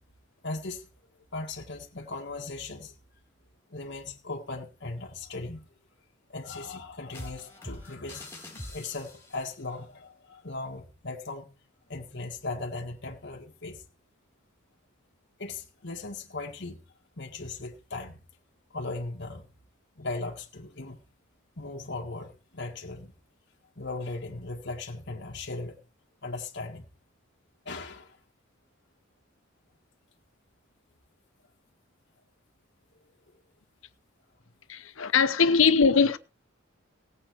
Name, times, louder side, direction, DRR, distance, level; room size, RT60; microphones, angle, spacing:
voice 1, 0.4-0.9 1.3-3.0 3.7-5.7 6.3-11.6 11.9-13.8 15.4-16.8 17.2-18.2 18.7-19.5 20.0-21.0 21.6-23.1 23.8-25.8 26.2-26.9 27.7-28.2 33.0-33.1 35.0-35.1, left 3 dB, 55° left, 1.9 m, -38 dB
sound 1, 7.1-9.5, left 1 dB, 10° left, 4.0 m, -43 dB
voice 2, 34.7-36.2, left 5 dB, 75° left, 0.9 m, -21 dB
17.5 x 8.3 x 4.6 m
head